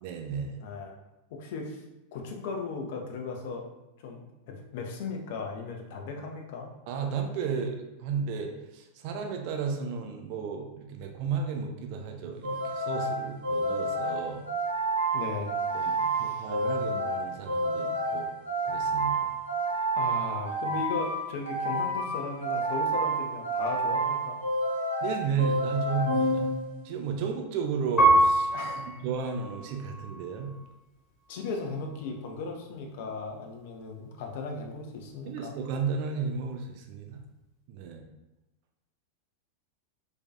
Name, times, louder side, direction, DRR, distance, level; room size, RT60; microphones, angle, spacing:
voice 1, 0.0-0.6 6.9-14.4 15.7-18.3 18.6-19.3 25.0-26.5 26.8-30.5 35.3-37.2 37.7-38.0, right 5 dB, 45° right, 3 dB, 0.3 m, -33 dB
voice 2, 0.6-0.9 1.3-1.8 2.1-3.7 4.0-6.7 15.1-16.5 19.9-24.4 28.5-29.0 31.3-35.5, left 4 dB, 50° left, 2 dB, 0.4 m, -37 dB
sound 1, 12.4-27.0, right 2 dB, 70° right, 0.7 m, -30 dB
Piano, 28.0-30.7 31.3-32.1, right 2 dB, 15° left, 0.9 m, -26 dB
2.5 x 2.3 x 2.2 m, 0.97 s
figure-of-eight pair, 90°, 0 cm